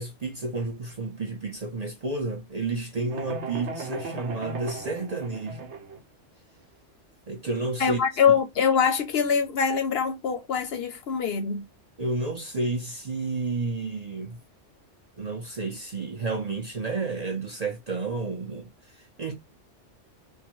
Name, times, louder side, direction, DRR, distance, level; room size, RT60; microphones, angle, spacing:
voice 1, 0.0-5.7 7.3-8.0 12.0-14.4 15.2-19.3, right 3 dB, 45° right, 0.6 m, -31 dB
sound 1, 3.1-6.0, right 3 dB, 70° right, 1.0 m, -37 dB
voice 2, 7.8-11.6, left 7 dB, 60° left, 0.8 m, -24 dB
3.6 x 2.2 x 3.0 m
omnidirectional pair, 1.2 m